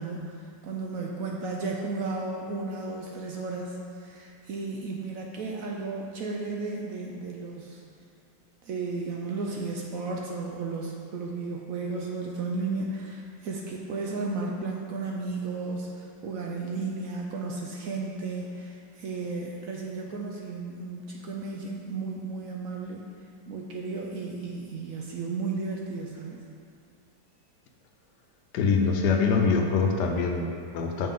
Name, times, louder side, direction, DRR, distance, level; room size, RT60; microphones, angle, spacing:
voice 1, 0.0-7.8 8.6-23.1 23.5-26.4, right 3 dB, 70° right, -1 dB, 0.9 m, -34 dB
voice 2, 28.5-31.1, left 5 dB, 80° left, 3 dB, 1.2 m, -24 dB
6.5 x 5.4 x 3.7 m, 2.4 s
omnidirectional pair, 1.8 m